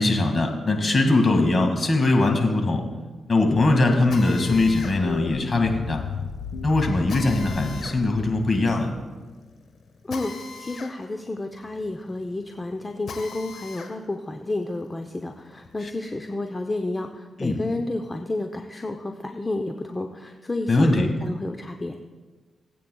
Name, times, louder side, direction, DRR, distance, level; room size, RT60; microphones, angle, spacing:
voice 1, 0.0-2.8 3.3-6.0 6.6-8.9 15.8-15.9 17.4-17.6 20.7-21.1, left 2 dB, 40° left, 3 dB, 2.0 m, -21 dB
Drill, 4.1-13.9 14.4-16.0, left 4 dB, 70° left, 1.4 m, -42 dB
sound 1, 4.3-9.0, left 6 dB, 90° left, 0.7 m, -35 dB
voice 2, 10.6-21.9, left 2 dB, 25° left, 5 dB, 0.7 m, -30 dB
19.0 x 8.5 x 2.3 m, 1.3 s
cardioid pair, 55°, 0 cm